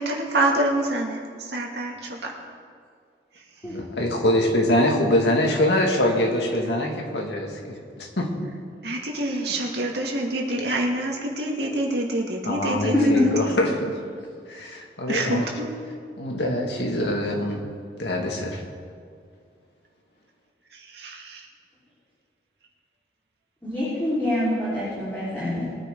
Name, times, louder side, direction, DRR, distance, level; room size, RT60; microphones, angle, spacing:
voice 1, 0.0-2.3 8.8-13.3 15.1-15.7 20.7-21.4, right 1 dB, 75° right, 0 dB, 2.1 m, -26 dB
voice 2, 3.6-8.3 12.4-14.0 14.5-15.5 16.2-17.7 18.0-18.6, left 1 dB, 80° left, 1 dB, 2.0 m, -24 dB
voice 3, 12.9-13.3 23.6-25.6, left 1 dB, 10° left, -12 dB, 4.0 m, -24 dB
21.5 x 9.7 x 3.8 m, 2.2 s
head